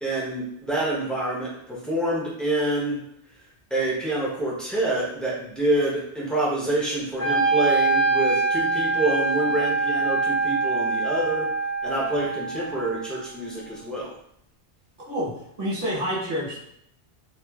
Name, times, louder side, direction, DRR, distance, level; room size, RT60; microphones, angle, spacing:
voice 1, 0.0-3.0 3.7-11.5 11.8-14.1, right 1 dB, ahead, -5 dB, 0.4 m, -27 dB
Wind instrument woodwind instrument, 7.2-13.3, right 3 dB, 35° right, 0.7 m, -24 dB
voice 2, 15.0-16.6, equal, 55° right, -7 dB, 1.1 m, -28 dB
2.9 x 2.2 x 2.2 m, 0.72 s
omnidirectional pair, 1.1 m